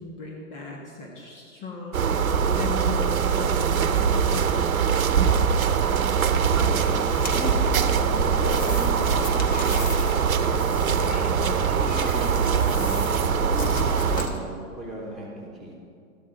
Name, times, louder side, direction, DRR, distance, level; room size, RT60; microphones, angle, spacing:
voice 1, 0.0-2.1 2.5-4.8, left 3 dB, 40° left, -1 dB, 1.8 m, -37 dB
sound 1, 1.9-14.3, right 6 dB, 90° right, 0.8 m, -22 dB
voice 2, 6.2-10.2 10.7-15.7, right 1 dB, ahead, -6 dB, 3.1 m, -39 dB
sound 2, 6.7-14.4, left 2 dB, 20° left, 1.3 m, -33 dB
13.5 x 10.0 x 4.0 m, 2.5 s
hypercardioid pair, 120°, 40 cm